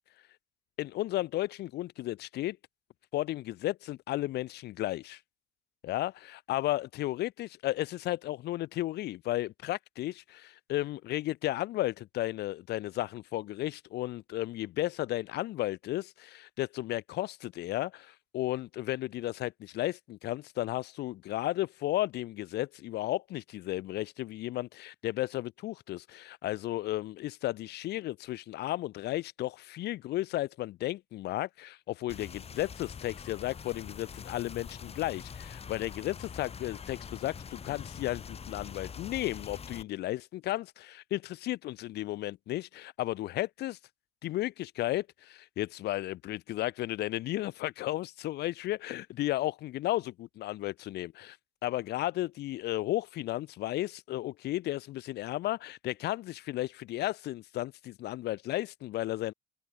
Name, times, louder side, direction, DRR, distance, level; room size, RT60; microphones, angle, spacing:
voice 1, 0.8-2.6 3.1-5.2 5.8-43.8 44.2-51.4 51.6-59.3, left 15 dB, 75° left, 2.7 m, -34 dB
sound 1, 32.1-39.8, left 6 dB, 35° left, 5.7 m, -44 dB
open air
cardioid pair, 110°, 17 cm